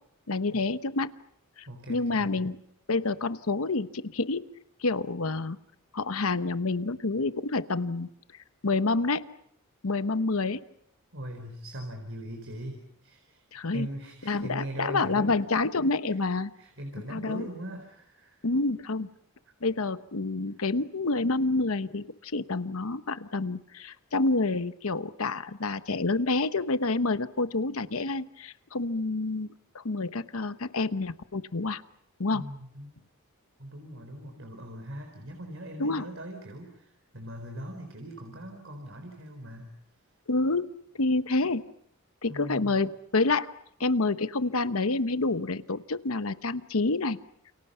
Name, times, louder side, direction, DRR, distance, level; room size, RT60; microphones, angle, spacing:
voice 1, 0.3-1.1 1.6-2.6 2.9-4.5 4.8-5.6 5.9-8.1 8.6-9.2 9.8-10.6 13.5-13.9 14.3-16.5 17.1-17.5 18.4-19.1 19.6-29.5 29.7-31.8 32.2-32.5 35.8-36.1 40.3-40.7 41.0-41.7 42.2-43.5 43.8-47.2, left 3 dB, 70° left, 12 dB, 1.0 m, -28 dB
voice 2, 1.7-2.3 11.1-13.4 13.7-15.3 16.1-16.2 16.5-18.4 32.3-32.9 33.6-39.7 42.3-42.8, right 1 dB, 60° right, 4 dB, 4.4 m, -40 dB
29.5 x 29.0 x 5.7 m, 0.72 s
head